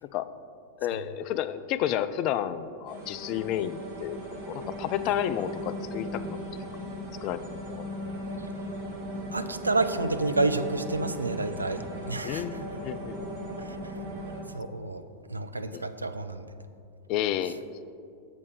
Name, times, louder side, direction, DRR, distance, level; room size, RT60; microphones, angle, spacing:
voice 1, 0.8-4.2 4.5-6.4 7.2-7.4 7.8-7.9 12.2-13.2 15.7-15.8 17.1-17.6, left 11 dB, 40° left, 13 dB, 0.3 m, -31 dB
sound 1, 2.9-14.4, equal, 50° right, 1.9 m, -37 dB
voice 2, 9.3-12.6 13.6-14.0 14.5-16.5, right 2 dB, 80° right, 10 dB, 0.3 m, -30 dB
6.7 x 5.2 x 6.5 m, 2.4 s
figure-of-eight pair, 90°, 0 cm